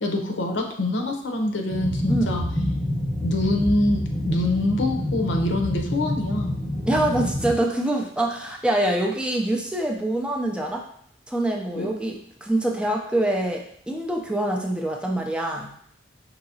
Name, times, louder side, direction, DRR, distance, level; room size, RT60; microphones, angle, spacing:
voice 1, 0.0-2.4 3.2-6.5 11.7-11.9, left 2 dB, 80° left, 2 dB, 0.7 m, -25 dB
sound 1, 1.7-7.6, left 1 dB, 15° left, 0.8 m, -27 dB
voice 2, 2.1-2.4 6.8-10.8 11.3-15.7, right 1 dB, 5° right, 0 dB, 0.4 m, -25 dB
5.5 x 2.8 x 2.7 m, 0.65 s
head